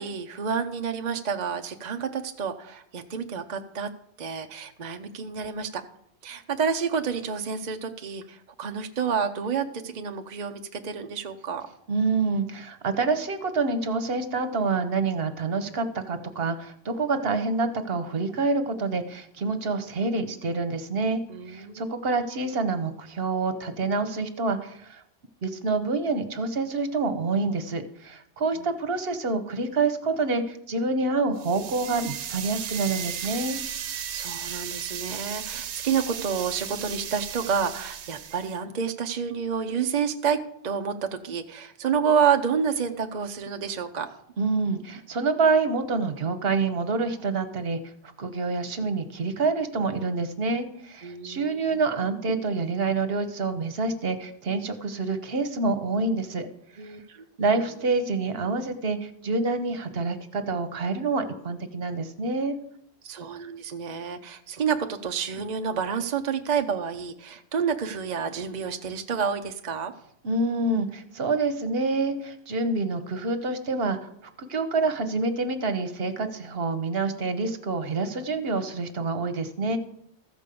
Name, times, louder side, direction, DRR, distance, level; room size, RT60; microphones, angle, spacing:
voice 1, 0.0-3.9 4.2-5.8 6.2-11.7 21.3-21.9 34.1-44.1 51.0-51.8 56.8-57.2 63.0-69.9, right 6 dB, 45° right, 6 dB, 0.7 m, -29 dB
voice 2, 11.9-21.2 21.5-25.0 25.4-33.6 44.4-47.8 48.2-56.5 56.8-56.9 57.4-62.6 70.2-74.0 74.4-79.8, right 3 dB, 60° right, 9 dB, 1.2 m, -27 dB
sound 1, 31.4-38.6, right 9 dB, 90° right, 1.0 m, -35 dB
14.5 x 5.3 x 6.8 m, 0.69 s
omnidirectional pair, 1.1 m